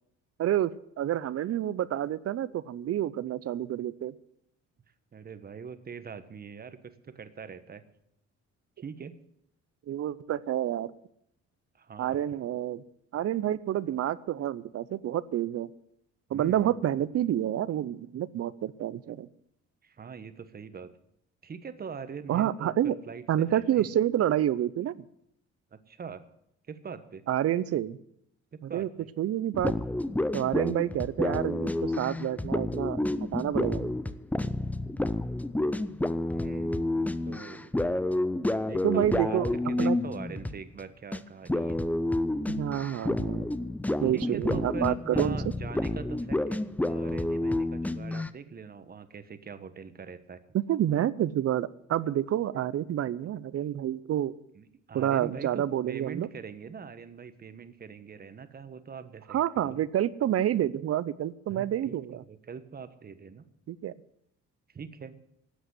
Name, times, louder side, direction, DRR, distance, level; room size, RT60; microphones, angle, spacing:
voice 1, 0.4-0.7 1.0-4.1 9.9-10.9 12.0-12.8 13.1-15.7 16.3-19.3 22.3-22.9 23.3-24.9 27.3-28.0 28.6-28.9 29.2-29.7 30.3-33.9 38.8-39.5 39.8-40.0 42.5-43.5 44.0-45.4 50.5-54.3 54.9-56.3 59.3-62.2 63.7-63.9, right 11 dB, 55° right, 18 dB, 0.7 m, -28 dB
voice 2, 5.1-7.8 8.8-9.2 11.8-12.2 16.3-16.7 19.8-20.9 21.4-23.9 25.7-26.2 26.7-27.2 28.5-29.1 36.3-37.7 38.7-39.4 39.7-41.8 44.0-46.6 46.9-50.4 54.5-59.8 61.5-63.5 64.7-65.2, right 6 dB, 30° right, 11 dB, 1.2 m, -42 dB
sound 1, 29.5-40.8 41.1-41.2 41.5-48.3, left 1 dB, 5° left, 0.5 m, -29 dB
12.5 x 8.0 x 9.7 m, 0.73 s
cardioid pair, 115°, 29 cm